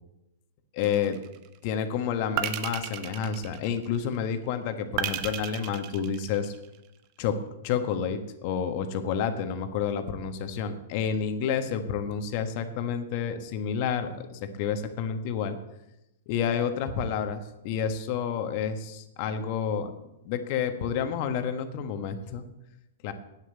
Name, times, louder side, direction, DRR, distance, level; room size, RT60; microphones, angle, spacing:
voice 1, 0.7-1.2 1.6-6.5 7.2-7.4 7.6-15.6 16.3-19.9 20.2-22.4 23.0-23.1, left 7 dB, 50° left, 8 dB, 1.5 m, -29 dB
sound 1, 0.8-1.5 2.4-4.1 5.0-6.8, right 11 dB, 45° right, 1.0 m, -34 dB
9.1 x 8.1 x 8.1 m, 0.89 s
hypercardioid pair, 120°, 0 cm